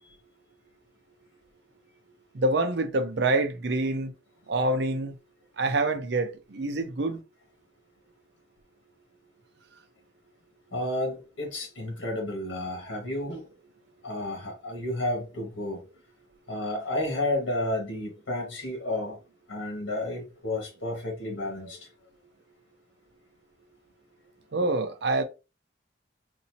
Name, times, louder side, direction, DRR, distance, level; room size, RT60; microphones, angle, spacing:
voice 1, 2.3-4.1 4.5-5.1 5.6-7.2 24.5-25.2, right 2 dB, 65° right, 0.6 m, -26 dB
voice 2, 10.7-13.4 14.0-15.8 16.5-19.2 19.5-21.9, left 1 dB, 80° left, 1.6 m, -31 dB
4.1 x 2.7 x 2.7 m
head